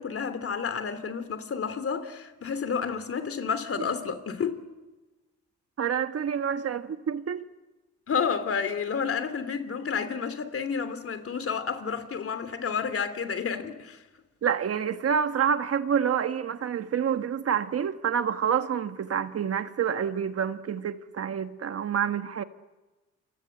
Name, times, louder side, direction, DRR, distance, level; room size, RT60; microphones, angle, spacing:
voice 1, 0.0-4.6 8.1-14.0, left 6 dB, 50° left, 3.1 m, -30 dB
voice 2, 5.8-7.5 14.4-22.4, right 8 dB, 50° right, 1.4 m, -28 dB
29.0 x 25.0 x 7.9 m
cardioid pair, 90°, 30 cm